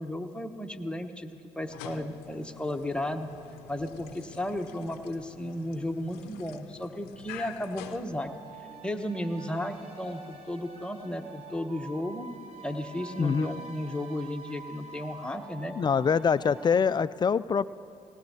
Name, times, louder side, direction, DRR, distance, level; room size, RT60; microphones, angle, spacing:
voice 1, 0.0-3.3 3.7-8.3 8.8-12.3 12.6-15.8, left 1 dB, 5° left, 5 dB, 1.0 m, -34 dB
sound 1, 1.6-8.8, left 11 dB, 75° left, 0.6 m, -48 dB
sound 2, 8.2-16.8, right 3 dB, 40° right, 1.9 m, -47 dB
voice 2, 13.2-13.6 15.7-17.7, left 6 dB, 25° left, 17 dB, 0.3 m, -24 dB
18.5 x 18.0 x 2.8 m, 2.7 s
hypercardioid pair, 55°, 16 cm